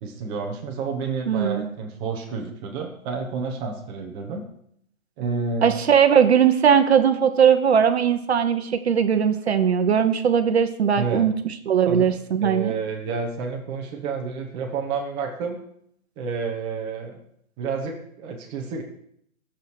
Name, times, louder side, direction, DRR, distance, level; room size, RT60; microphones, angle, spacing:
voice 1, 0.0-4.4 5.2-5.8 11.0-11.3 11.8-12.1 12.4-15.6 16.2-17.2 17.6-18.8, right 5 dB, 10° right, 1 dB, 1.0 m, -30 dB
voice 2, 1.3-1.7 5.6-12.7, right 7 dB, 50° right, 8 dB, 1.0 m, -19 dB
22.5 x 7.4 x 4.7 m, 0.70 s
hypercardioid pair, 165°, 41 cm